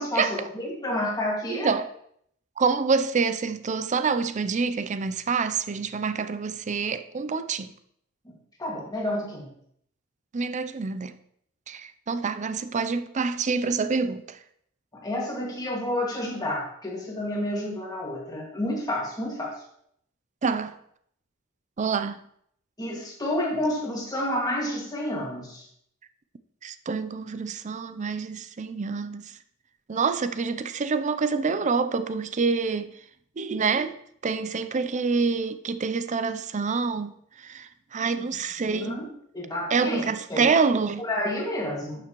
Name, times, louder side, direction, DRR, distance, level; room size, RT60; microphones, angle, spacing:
voice 1, 0.0-1.7 8.6-9.5 14.9-19.5 22.8-25.7 38.1-38.3 38.6-39.1 39.3-40.5 41.0-42.0, left 1 dB, 20° left, 2.0 m, -30 dB
voice 2, 1.5-1.9 2.6-7.7 10.3-11.1 11.7-14.4 20.4-20.8 21.8-22.2 26.6-29.3 29.9-32.9 33.4-33.9 34.2-37.1 37.4-39.0 39.7-41.0, right 5 dB, 35° right, 0.5 m, -26 dB
11.0 x 6.9 x 3.0 m
head